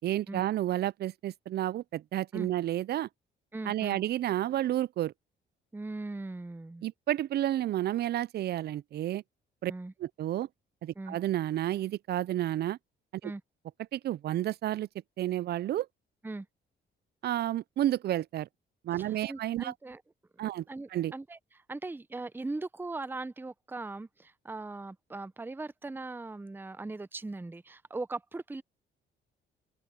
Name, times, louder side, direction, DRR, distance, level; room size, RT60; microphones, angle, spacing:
voice 1, 0.0-3.1 3.7-5.1 6.8-9.2 9.6-9.7 10.0-10.5 10.8-12.8 13.2-13.3 13.9-14.9 15.2-15.9 17.2-18.5 18.8-19.7 20.4-20.6 20.9-21.1, right 13 dB, 55° right, 0.4 m, -31 dB
voice 2, 3.5-4.0 5.7-6.9 9.7-9.9 11.0-11.2 13.2-13.4 16.2-16.5 18.9-20.0 20.7-28.6, right 2 dB, 10° right, 0.6 m, -39 dB
open air
cardioid pair, 90°, 20 cm